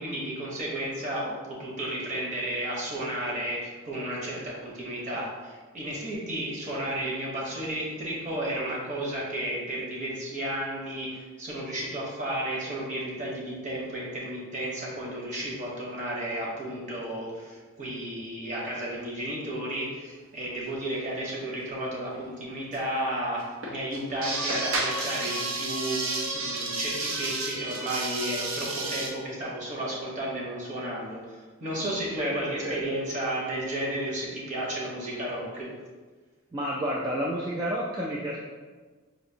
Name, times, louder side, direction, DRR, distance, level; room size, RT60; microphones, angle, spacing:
voice 1, 0.0-35.7, right 1 dB, 35° right, -4 dB, 0.9 m, -33 dB
sound 1, 21.0-21.1 21.3-21.4 22.1-22.2 22.7-22.8 23.4-29.1, right 2 dB, 70° right, 0.6 m, -31 dB
voice 2, 36.5-38.4, equal, 20° right, -4 dB, 0.3 m, -30 dB
4.9 x 2.6 x 2.7 m, 1.4 s
head